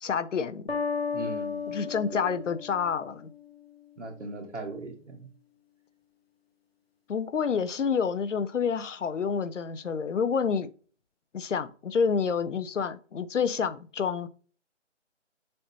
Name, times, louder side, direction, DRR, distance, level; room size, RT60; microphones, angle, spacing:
voice 1, 0.0-0.7 1.7-3.3 7.1-10.7 11.3-14.3, left 6 dB, 80° left, 0.6 m, -28 dB
sound 1, 0.7-3.5, left 5 dB, 55° left, 0.9 m, -34 dB
voice 2, 1.1-1.8 2.1-2.4 4.0-5.3, right 2 dB, 75° right, 1.5 m, -39 dB
6.4 x 2.8 x 2.9 m
figure-of-eight pair, 175°, 37 cm